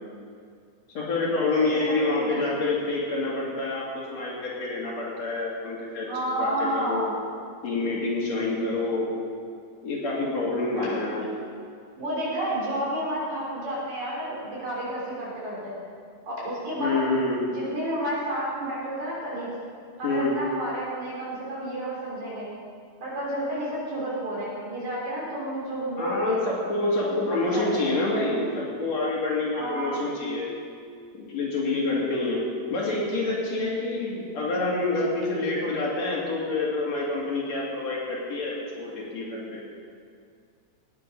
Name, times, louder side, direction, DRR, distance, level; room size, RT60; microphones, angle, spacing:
voice 1, 1.0-6.1 6.4-7.1 7.6-9.1 9.8-11.3 16.8-17.4 20.0-20.4 26.0-30.5 31.1-32.4 32.7-39.6, left 2 dB, 55° left, -5 dB, 3.5 m, -27 dB
voice 2, 1.6-2.4 6.1-7.1 10.8-10.9 12.0-15.8 16.3-17.0 17.5-19.5 20.0-22.5 23.0-26.4 27.0-27.9 29.5-30.0, right 1 dB, 60° right, -6 dB, 5.4 m, -31 dB
18.5 x 9.3 x 5.4 m, 2.3 s
omnidirectional pair, 3.7 m